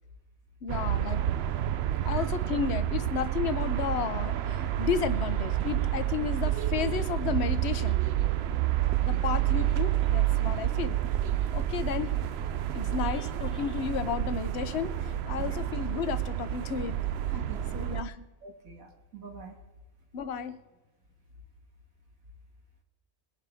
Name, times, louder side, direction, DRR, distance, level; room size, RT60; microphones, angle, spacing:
voice 1, 0.6-1.2 2.1-8.0 9.0-11.0 11.5-12.1 12.7-17.0 17.7-18.3 20.1-20.6, left 7 dB, 55° left, 12 dB, 1.0 m, -33 dB
sound 1, 0.7-18.0, right 12 dB, 65° right, 0.7 m, -29 dB
voice 2, 17.3-17.8 18.4-19.6, right 5 dB, 80° right, 1 dB, 2.2 m, -45 dB
22.0 x 11.0 x 3.5 m, 1.1 s
omnidirectional pair, 1.4 m